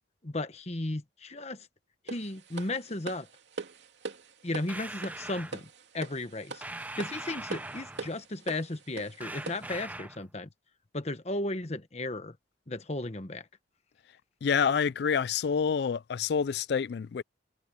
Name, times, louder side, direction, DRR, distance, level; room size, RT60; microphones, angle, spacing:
voice 1, 0.2-1.7 2.0-3.3 4.4-5.7 5.9-6.6 7.0-10.5 10.9-12.4 12.7-13.5, left 2 dB, 35° left, 1.2 m, -35 dB
sound 1, 2.1-9.8, right 3 dB, 70° right, 2.7 m, -43 dB
sound 2, 4.7-5.6 6.6-8.2 9.2-10.3, right 2 dB, 10° right, 0.7 m, -41 dB
voice 2, 14.4-17.2, left 6 dB, 60° left, 0.3 m, -27 dB
head